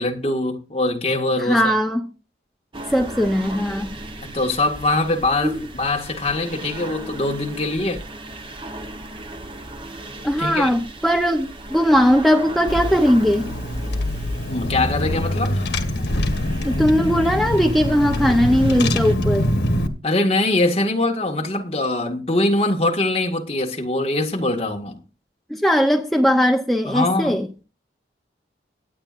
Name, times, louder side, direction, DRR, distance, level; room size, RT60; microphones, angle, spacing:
voice 1, 0.0-1.7 4.2-8.0 10.4-10.7 14.5-15.7 20.0-25.0 26.9-27.4, left 2 dB, 35° left, 1.8 m, -22 dB
voice 2, 1.4-2.0 2.9-3.9 5.4-5.5 10.2-13.5 16.6-19.5 25.5-27.5, equal, ahead, 0.7 m, -19 dB
sound 1, 2.7-19.2, right 1 dB, 30° right, 1.0 m, -37 dB
Car / Engine, 12.7-19.9, left 1 dB, 80° left, 1.5 m, -24 dB
23.5 x 8.8 x 2.6 m
head